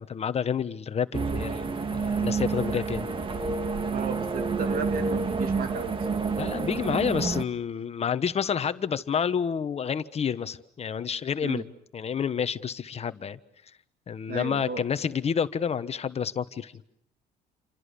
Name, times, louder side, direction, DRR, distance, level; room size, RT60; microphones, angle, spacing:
voice 1, 0.0-3.1 6.3-11.7 11.9-13.4 14.1-16.7, left 7 dB, 40° left, 12 dB, 1.2 m, -29 dB
sound 1, 1.1-7.4, right 4 dB, 30° right, 1.9 m, -29 dB
voice 2, 3.9-6.1 11.4-11.7 14.3-14.8, right 6 dB, 60° right, 9 dB, 2.3 m, -35 dB
28.5 x 27.0 x 6.9 m, 0.70 s
cardioid pair, 110°, 17 cm